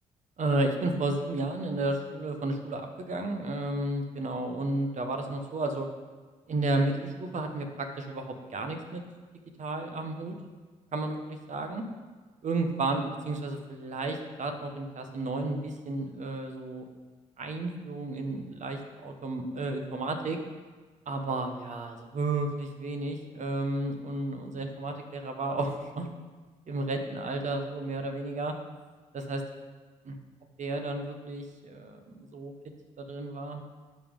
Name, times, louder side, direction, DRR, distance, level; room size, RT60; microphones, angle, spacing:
voice 1, 0.4-5.9 6.5-9.0 9.6-10.3 10.9-11.8 12.4-16.8 17.4-20.4 21.1-26.1 26.7-28.5 29.1-29.4 30.0-30.2 30.6-32.5 33.0-33.6, right 2 dB, 50° right, 5 dB, 1.2 m, -32 dB
10.0 x 5.3 x 3.8 m, 1.4 s
hypercardioid pair, 55°, 16 cm